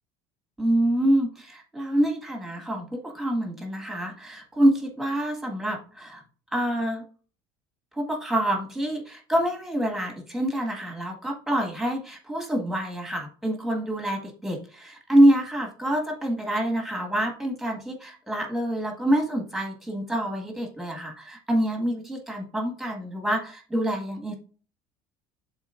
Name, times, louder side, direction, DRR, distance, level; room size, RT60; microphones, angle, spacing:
voice 1, 0.6-6.2 6.5-7.0 7.9-24.3, right 1 dB, ahead, 2 dB, 1.7 m, -26 dB
11.0 x 4.1 x 2.5 m, 0.39 s
cardioid pair, 140°, 10 cm